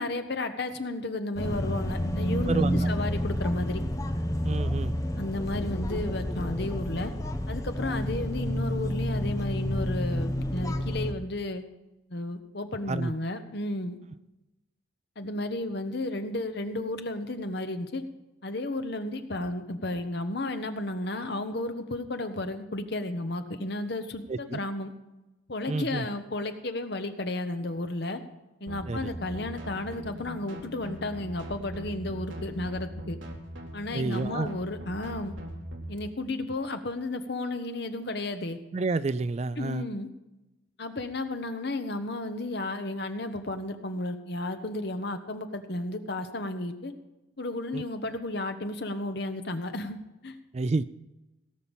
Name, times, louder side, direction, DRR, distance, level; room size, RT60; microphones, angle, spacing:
voice 1, 0.0-3.8 5.2-7.1 7.5-11.6 12.1-14.0 15.2-18.0 18.4-24.9 25.5-28.2 28.6-33.2 33.7-35.3 35.9-38.6 39.6-40.1 40.8-46.9 47.4-50.0 50.2-50.3, left 2 dB, 55° left, 8 dB, 1.0 m, -33 dB
sound 1, 1.4-11.1, equal, 15° left, 0.7 m, -29 dB
voice 2, 2.5-2.9 4.4-4.9 12.9-13.1 24.3-24.6 25.7-26.1 28.9-29.1 33.9-34.5 38.7-39.9 47.7-47.8 50.5-50.8, right 3 dB, 35° right, 15 dB, 0.3 m, -29 dB
sound 2, 28.7-36.0, equal, 75° right, 2.0 m, -40 dB
17.5 x 5.8 x 7.0 m, 1.0 s
head